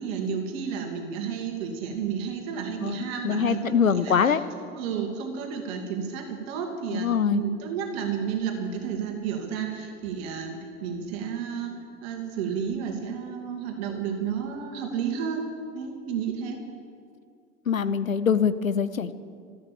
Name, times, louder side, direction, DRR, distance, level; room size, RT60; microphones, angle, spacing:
voice 1, 0.0-4.4 4.7-11.7 12.0-15.5 15.7-16.6, right 7 dB, 50° right, 3 dB, 2.3 m, -31 dB
voice 2, 2.8-4.4 6.9-7.4 17.7-19.1, left 7 dB, 85° left, 13 dB, 0.8 m, -24 dB
14.0 x 12.0 x 7.2 m, 2.3 s
figure-of-eight pair, 85°, 40 cm